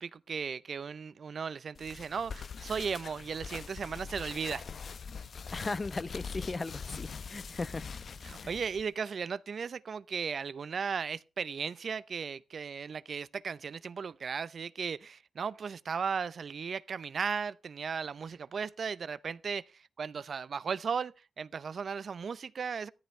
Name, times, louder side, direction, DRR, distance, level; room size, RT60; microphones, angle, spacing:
voice 1, 0.0-4.7 8.2-22.9, right 6 dB, 65° right, 0.6 m, -36 dB
sound 1, 1.7-8.8, left 5 dB, 65° left, 0.7 m, -43 dB
voice 2, 5.5-7.9 8.4-8.5, left 3 dB, 35° left, 0.9 m, -37 dB
14.5 x 14.0 x 3.3 m
cardioid pair, 80°, 0 cm